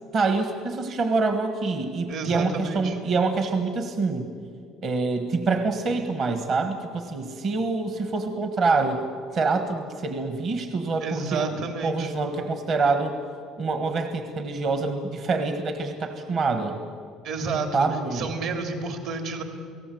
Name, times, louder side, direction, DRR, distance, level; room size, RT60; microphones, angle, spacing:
voice 1, 0.1-4.3 4.8-9.0 9.3-13.1 13.6-16.8 17.7-18.2, right 3 dB, 35° right, 6 dB, 1.4 m, -26 dB
voice 2, 2.1-3.0 11.0-12.1 17.2-17.9 18.1-19.4, right 4 dB, 55° right, 5 dB, 3.1 m, -30 dB
29.0 x 18.5 x 7.8 m, 2.3 s
cardioid pair, 180°, 0 cm